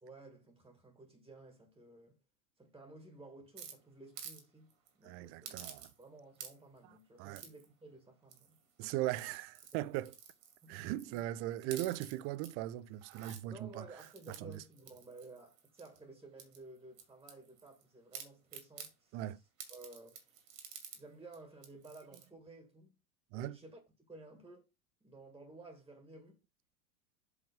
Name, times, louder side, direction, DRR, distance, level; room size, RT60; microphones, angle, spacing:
voice 1, 0.0-2.2 2.6-5.6 6.0-8.6 9.7-10.0 10.6-11.2 13.5-19.3 19.7-23.0 23.3-23.8 24.1-24.7 25.0-26.4, right 2 dB, 10° right, 1.9 m, -55 dB
sound 1, 3.6-4.4 4.7-4.9 5.4-6.1 6.3-6.8 7.3-7.7 8.3-8.7 9.1-11.2 11.6-12.5 12.9-13.4 14.0-16.0 16.4-17.8 18.1-18.9 19.6-21.0 21.3-21.4 21.6-22.3, right 7 dB, 65° right, 2.3 m, -51 dB
voice 2, 5.0-5.9 6.8-7.4 8.8-10.1 10.7-13.9 14.3-14.6 19.1-19.4 23.3-23.6, right 14 dB, 35° right, 0.5 m, -39 dB
7.8 x 3.5 x 5.2 m
figure-of-eight pair, 95°, 42 cm